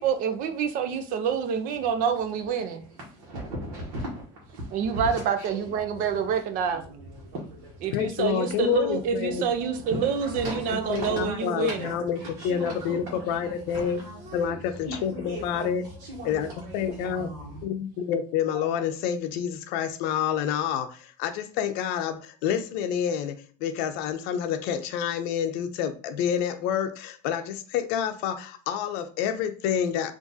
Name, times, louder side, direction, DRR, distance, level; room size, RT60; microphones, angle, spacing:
voice 1, 0.0-2.8 4.7-6.8 7.8-11.9 18.5-18.6, right 7 dB, 55° right, 0.6 m, -27 dB
voice 2, 2.8-6.2 6.7-8.1 8.4-17.6, right 1 dB, 85° right, 1.1 m, -38 dB
voice 3, 7.9-9.4 10.9-12.2 12.4-15.8 16.2-16.5 16.7-17.3 17.6-30.1, left 8 dB, 70° left, 0.5 m, -28 dB
3.7 x 2.5 x 2.7 m
cardioid pair, 130°, 17 cm